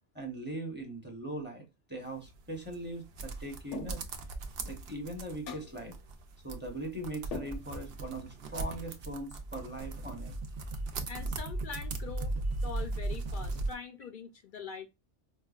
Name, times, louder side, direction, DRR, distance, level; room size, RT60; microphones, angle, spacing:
voice 1, 0.1-1.6 1.9-4.0 4.6-5.9 6.4-10.4, right 1 dB, 10° right, 0.7 m, -40 dB
sound 1, 2.0-13.7, right 3 dB, 65° right, 0.8 m, -43 dB
sound 2, 3.7-4.3 5.5-5.9 7.3-8.0, left 4 dB, 85° left, 1.0 m, -42 dB
sound 3, 8.9-13.7, right 2 dB, 90° right, 1.1 m, -36 dB
voice 2, 11.1-12.4 12.6-14.9, left 5 dB, 60° left, 0.6 m, -43 dB
4.8 x 2.2 x 2.4 m
omnidirectional pair, 1.2 m